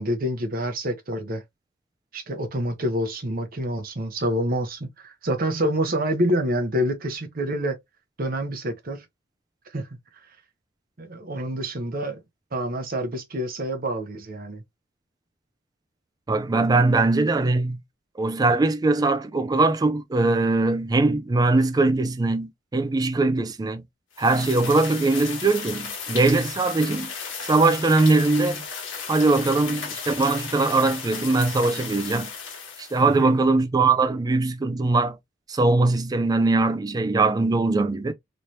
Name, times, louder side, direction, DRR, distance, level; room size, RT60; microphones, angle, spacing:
voice 1, 0.0-1.4 2.1-7.8 8.2-9.0 9.7-9.9 11.0-12.2 12.5-14.6 33.2-33.4, equal, 50° right, 0.9 m, -27 dB
voice 2, 16.3-17.8 18.2-23.8 24.2-27.1 27.4-28.6 29.1-32.3 32.8-35.2 35.5-38.1, right 3 dB, 20° right, 0.4 m, -21 dB
sound 1, 24.2-33.2, left 6 dB, 90° left, 1.3 m, -35 dB
3.1 x 3.0 x 2.6 m
head